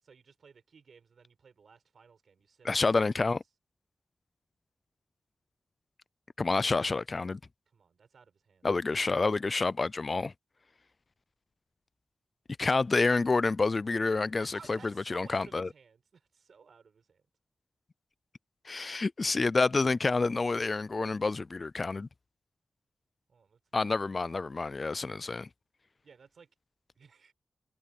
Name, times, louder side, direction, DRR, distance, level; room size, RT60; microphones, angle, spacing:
voice 1, 0.0-2.8 7.7-8.7 14.4-17.2 23.3-23.6 26.0-26.5 27.0-27.3, right 5 dB, 80° right, 5.1 m, -56 dB
voice 2, 2.6-3.4 6.4-7.4 8.6-10.3 12.6-15.7 18.7-22.1 23.7-25.5, left 3 dB, 45° left, 0.4 m, -28 dB
wide cardioid pair, 90°, 0 cm